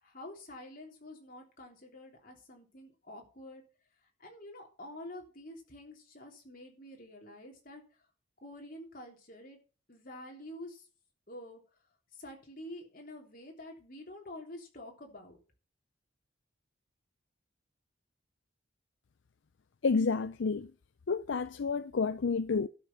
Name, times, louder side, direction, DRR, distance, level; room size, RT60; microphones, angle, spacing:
voice 1, 0.0-3.6 4.2-7.8 8.4-9.6 9.9-10.9 11.3-11.6 12.1-15.4, left 1 dB, 45° left, 3.4 m, -48 dB
voice 2, 19.8-20.7 21.1-22.7, left 4 dB, 70° left, 0.5 m, -30 dB
12.0 x 6.2 x 5.7 m
head